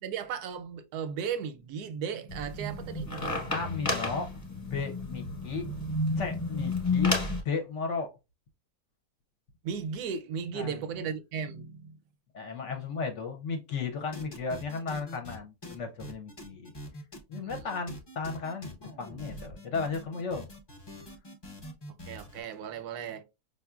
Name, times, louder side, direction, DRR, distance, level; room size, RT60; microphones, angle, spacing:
voice 1, 0.0-3.9 9.6-12.0 17.4-17.7 21.9-23.2, right 7 dB, 90° right, 1.1 m, -36 dB
sound 1, 2.3-7.4, left 3 dB, 15° left, 1.1 m, -31 dB
voice 2, 3.5-4.3 4.7-5.6 6.2-7.1 7.4-8.1 10.5-10.8 12.3-16.7 17.3-20.5, left 4 dB, 60° left, 0.9 m, -35 dB
sound 2, 14.1-15.4 15.6-22.4, left 1 dB, 35° left, 0.4 m, -44 dB
5.1 x 2.4 x 2.3 m
omnidirectional pair, 1.6 m